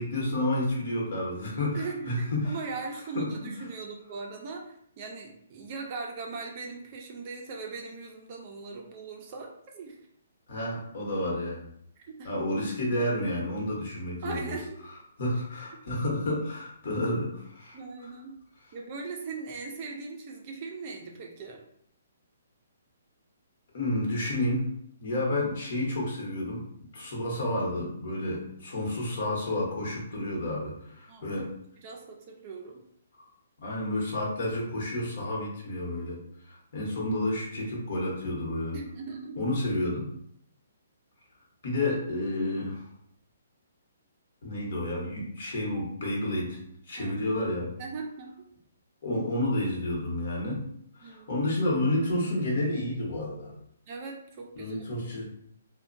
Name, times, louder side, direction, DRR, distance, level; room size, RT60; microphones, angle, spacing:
voice 1, 0.0-2.5 3.1-3.3 10.5-11.7 12.2-14.6 15.2-17.8 23.7-24.7 25.0-26.7 26.9-31.5 33.6-36.2 36.5-38.8 39.4-40.1 41.6-42.8 44.4-46.6 46.9-47.7 49.0-50.6 51.0-53.5 54.6-55.3, left 1 dB, 55° left, -3 dB, 1.0 m, -30 dB
voice 2, 1.7-10.0 12.0-12.3 14.2-14.7 17.7-18.4 18.7-21.6 28.7-29.1 31.1-31.4 31.8-32.8 38.7-39.5 47.0-47.2 47.8-48.3 51.0-51.4 53.9-54.9, right 4 dB, 30° right, 1 dB, 0.4 m, -39 dB
2.7 x 2.1 x 2.5 m, 0.68 s
hypercardioid pair, 160°, 0 cm